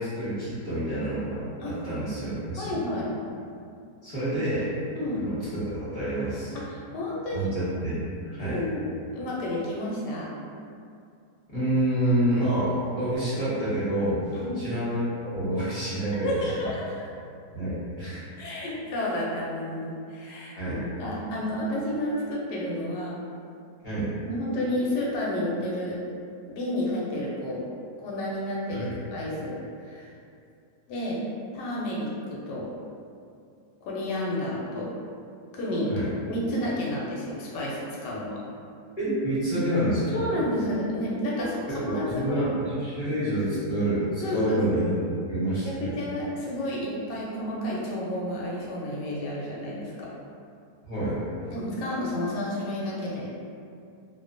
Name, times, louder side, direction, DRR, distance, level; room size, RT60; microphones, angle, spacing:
voice 1, 0.0-2.7 4.0-4.7 5.1-6.6 7.3-8.0 8.4-8.6 11.5-15.1 15.3-16.4 17.5-18.2 20.6-20.8 23.8-24.1 28.7-29.0 35.9-36.1 39.0-40.2 41.4-45.8 50.8-51.2, right 1 dB, 35° left, -13 dB, 0.7 m, -28 dB
voice 2, 2.6-3.1 5.0-5.2 6.5-7.5 8.4-8.8 9.1-10.3 14.3-14.6 16.2-17.1 18.4-23.2 24.2-26.0 26.5-27.6 28.0-29.5 29.8-30.1 30.9-31.2 31.5-32.7 33.8-34.9 35.5-38.4 40.1-42.4 44.2-44.6 45.4-50.1 51.5-53.3, left 1 dB, 85° left, -5 dB, 1.2 m, -31 dB
2.8 x 2.1 x 2.5 m, 2.4 s
omnidirectional pair, 1.8 m